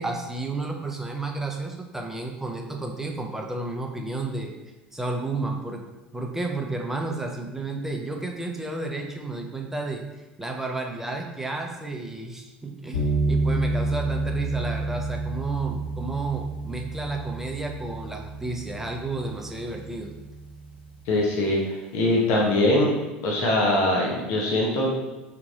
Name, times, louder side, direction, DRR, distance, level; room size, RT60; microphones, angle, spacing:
voice 1, 0.0-4.5 4.9-5.8 6.1-10.0 10.4-20.1, right 3 dB, 5° right, 2 dB, 0.6 m, -32 dB
sound 1, 12.9-21.1, right 2 dB, 75° left, 1.2 m, -29 dB
voice 2, 21.1-21.6 21.9-22.9 23.2-24.9, left 1 dB, 55° left, -2 dB, 0.9 m, -22 dB
3.6 x 2.8 x 4.1 m, 1.1 s
figure-of-eight pair, 75°, 5 cm